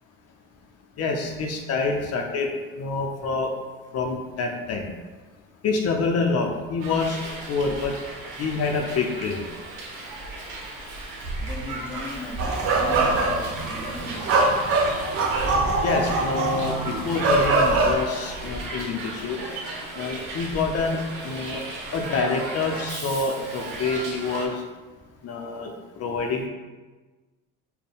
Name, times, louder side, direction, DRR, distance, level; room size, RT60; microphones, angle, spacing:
voice 1, 1.0-2.5 2.8-3.5 3.9-4.9 5.6-7.2 7.5-7.9 8.4-9.4 15.8-19.4 20.0-21.6 21.9-24.6 25.2-25.7 26.0-26.5, left 4 dB, 50° left, 2 dB, 0.6 m, -26 dB
Hiss, 6.8-24.5, right 2 dB, 70° right, 1.0 m, -35 dB
voice 2, 11.4-14.2, left 2 dB, 5° left, -1 dB, 0.6 m, -37 dB
sound 1, 12.4-18.0, right 3 dB, 45° right, 0.6 m, -23 dB
4.2 x 2.2 x 3.4 m, 1.3 s
cardioid pair, 100°, 33 cm